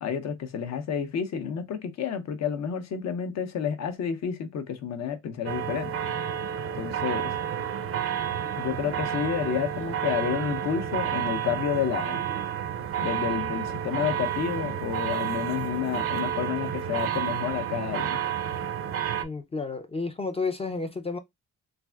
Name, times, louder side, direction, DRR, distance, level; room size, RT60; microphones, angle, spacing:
voice 1, 0.0-5.9 6.7-7.3 8.6-12.2 13.0-18.2, left 8 dB, 60° left, 0.7 m, -30 dB
sound 1, 5.5-19.3, right 9 dB, 50° right, 0.4 m, -30 dB
voice 2, 19.2-21.2, left 4 dB, 20° left, 0.4 m, -31 dB
3.3 x 2.5 x 2.3 m
cardioid pair, 90°, 30 cm